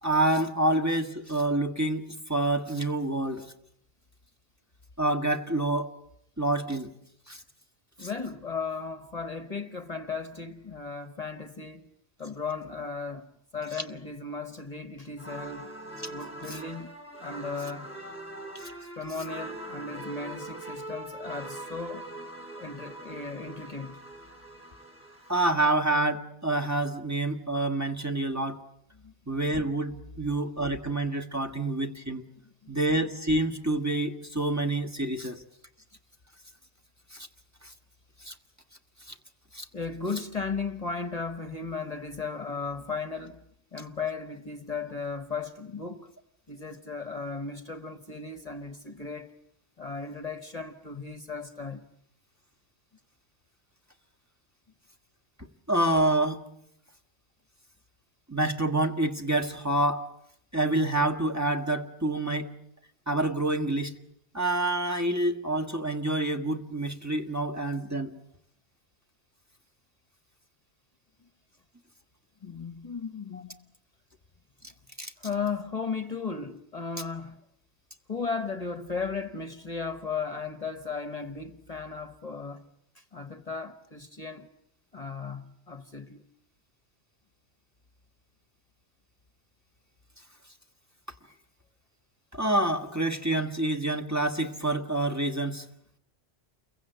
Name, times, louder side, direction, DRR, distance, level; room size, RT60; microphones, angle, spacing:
voice 1, 0.0-3.4 5.0-5.9 6.4-6.9 7.3-7.4 8.0-8.1 16.0-16.1 16.5-16.6 18.5-18.7 25.3-28.6 29.3-32.2 32.7-35.4 37.1-37.3 37.6-37.7 38.2-38.3 39.1-39.2 39.5-39.6 55.7-56.4 58.3-60.1 60.5-62.5 63.1-63.9 64.3-68.1 73.3-73.4 75.0-75.1 92.3-95.6, right 2 dB, 15° right, 1.6 m, -27 dB
voice 2, 8.0-11.9 12.2-13.3 13.5-15.7 16.1-16.9 17.2-17.9 19.0-22.1 22.6-24.0 28.9-29.1 32.6-32.7 39.7-43.4 43.7-46.1 46.5-49.3 49.8-51.9 71.2-71.3 72.4-73.7 75.2-77.4 78.1-82.6 82.9-84.5 84.9-86.2, left 4 dB, 35° left, 1.2 m, -36 dB
sound 1, 15.2-25.6, right 1 dB, 10° left, 4.3 m, -42 dB
29.5 x 23.0 x 8.0 m
omnidirectional pair, 1.1 m